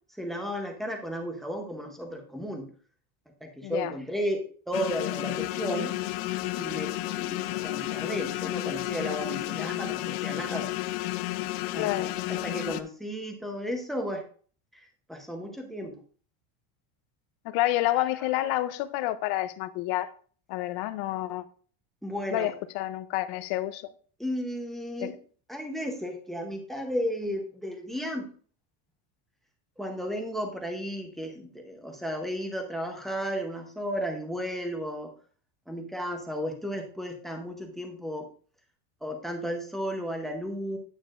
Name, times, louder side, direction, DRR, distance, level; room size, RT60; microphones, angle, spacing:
voice 1, 0.2-2.7 3.4-5.9 6.5-10.7 11.2-11.5 11.7-14.2 14.7-16.0 18.1-18.3 22.0-22.5 24.2-25.1 25.5-28.3 29.8-35.1 35.7-38.3 39.0-40.8, equal, ahead, 0.7 m, -34 dB
voice 2, 3.6-3.9 11.8-12.1 17.4-20.1 20.5-21.4 22.3-23.9 25.0-25.1, left 15 dB, 55° left, 0.6 m, -29 dB
sound 1, 4.7-12.8, left 17 dB, 85° left, 0.8 m, -32 dB
9.3 x 9.0 x 2.4 m
cardioid pair, 175°, 45 cm